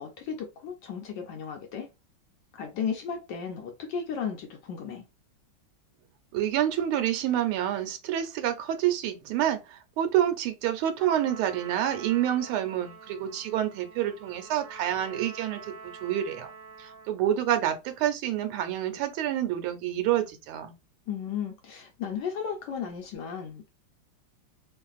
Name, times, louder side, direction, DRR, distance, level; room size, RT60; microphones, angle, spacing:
voice 1, 0.0-1.9 2.5-5.1 21.1-23.7, left 7 dB, 70° left, 1.1 m, -35 dB
voice 2, 6.3-15.7 16.0-16.5 16.8-20.7, right 11 dB, 85° right, 1.5 m, -28 dB
Trumpet, 11.0-17.2, right 5 dB, 65° right, 1.4 m, -46 dB
3.2 x 2.5 x 2.3 m
omnidirectional pair, 2.3 m